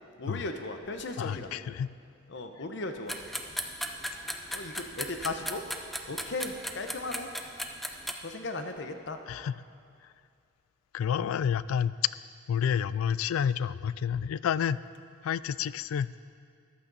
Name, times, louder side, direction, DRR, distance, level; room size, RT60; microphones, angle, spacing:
voice 1, 0.2-1.5 2.3-3.2 4.5-5.6 6.1-7.3 8.2-9.2, left 2 dB, 60° left, 6 dB, 0.8 m, -36 dB
voice 2, 1.2-1.9 9.3-9.6 10.0-10.1 10.9-12.0 12.5-14.8 15.2-16.1, left 8 dB, 85° left, 18 dB, 0.3 m, -29 dB
sound 1, 3.1-8.1, equal, ahead, 0.5 m, -36 dB
14.0 x 11.5 x 4.1 m, 2.3 s
head